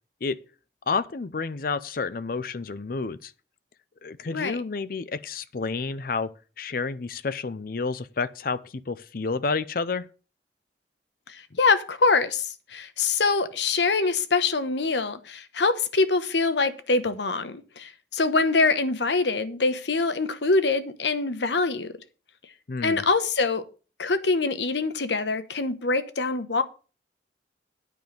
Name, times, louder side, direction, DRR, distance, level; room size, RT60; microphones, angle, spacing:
voice 1, 0.9-3.3 4.0-10.1 22.7-23.0, left 4 dB, 55° left, 0.5 m, -30 dB
voice 2, 11.3-21.9 22.8-23.6 24.0-26.6, left 3 dB, 85° left, 1.1 m, -24 dB
9.3 x 5.3 x 7.7 m
head